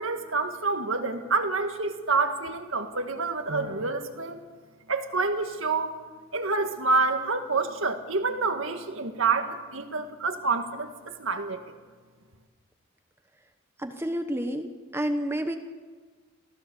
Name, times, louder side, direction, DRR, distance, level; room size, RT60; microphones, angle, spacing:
voice 1, 0.0-4.4 4.9-6.0 6.3-11.6, right 4 dB, 70° right, 6 dB, 1.8 m, -28 dB
voice 2, 13.8-15.6, equal, 10° right, 6 dB, 1.0 m, -30 dB
23.5 x 16.0 x 7.0 m, 1.4 s
head